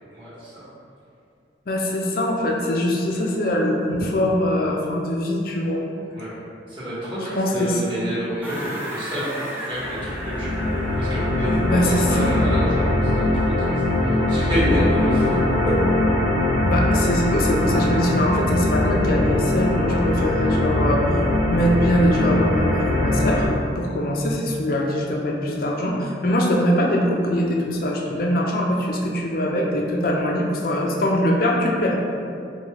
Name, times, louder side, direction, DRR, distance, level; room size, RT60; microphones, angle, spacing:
voice 1, 0.1-0.6 6.1-6.3 6.7-10.6 11.0-13.7 14.0-15.4 15.6-15.7, equal, 25° right, -11 dB, 1.3 m, -28 dB
voice 2, 1.7-5.8 7.3-7.8 11.7-12.4 16.6-21.2 21.5-23.5 23.7-32.0, equal, 50° left, -2 dB, 0.5 m, -22 dB
sound 1, 8.4-12.8, right 1 dB, 10° right, 0.4 m, -35 dB
sound 2, 9.7-23.5, left 1 dB, 55° right, 0.9 m, -21 dB
4.6 x 2.3 x 2.9 m, 2.4 s
head